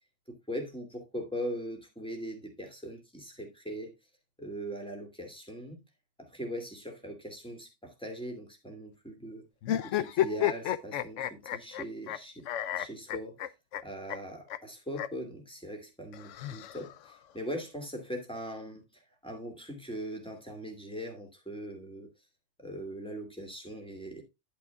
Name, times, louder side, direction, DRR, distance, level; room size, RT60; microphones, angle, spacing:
voice 1, 0.3-3.9 4.4-5.8 6.2-9.5 9.8-12.5 12.8-13.4 13.8-22.1 22.6-24.2, equal, 5° left, 2.3 m, -40 dB
sound 1, 9.6-12.2 12.5-13.8 14.1-14.2 14.5-14.6 14.9-15.1 16.1-17.1, left 12 dB, 80° left, 1.0 m, -31 dB
9.9 x 8.8 x 2.3 m
omnidirectional pair, 1.2 m